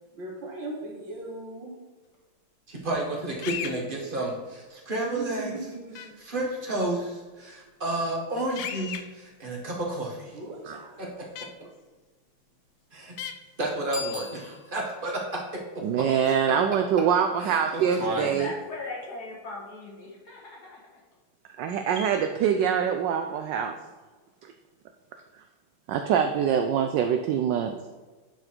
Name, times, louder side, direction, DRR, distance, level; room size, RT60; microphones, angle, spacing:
voice 1, 0.1-1.7 5.1-6.1 10.3-11.0, right 2 dB, 60° right, -2 dB, 2.2 m, -38 dB
voice 2, 2.7-5.5 6.2-10.3 11.0-11.1 11.6-11.7 12.9-13.1 13.6-15.2 17.4-18.4, right 1 dB, 30° right, -2 dB, 1.4 m, -31 dB
sound 1, 3.4-3.7 5.9-6.1 8.6-9.0 11.4-11.5 13.2-13.3, left 9 dB, 85° left, 1.6 m, -34 dB
Bicycle bell, 13.8-15.1, left 4 dB, 10° left, 1.7 m, -39 dB
voice 3, 15.8-18.5 21.6-23.7 25.9-27.7, right 8 dB, 75° right, 6 dB, 1.0 m, -24 dB
voice 4, 18.4-20.8, left 3 dB, 50° left, -2 dB, 1.8 m, -39 dB
9.9 x 4.0 x 4.5 m, 1.3 s
omnidirectional pair, 2.4 m